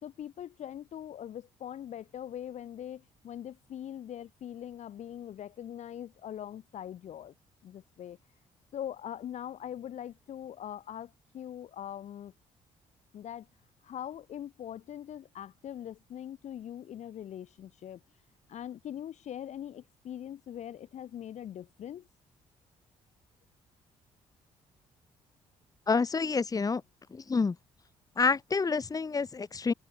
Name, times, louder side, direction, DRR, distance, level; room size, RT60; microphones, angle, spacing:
voice 1, 0.0-7.3 7.6-8.2 8.7-12.3 13.1-13.5 13.8-18.0 18.5-22.1, left 10 dB, 60° left, 0.9 m, -42 dB
voice 2, 25.9-26.8 27.1-27.6 28.2-29.7, left 4 dB, 25° left, 0.9 m, -28 dB
open air
supercardioid pair, 70°, 13 cm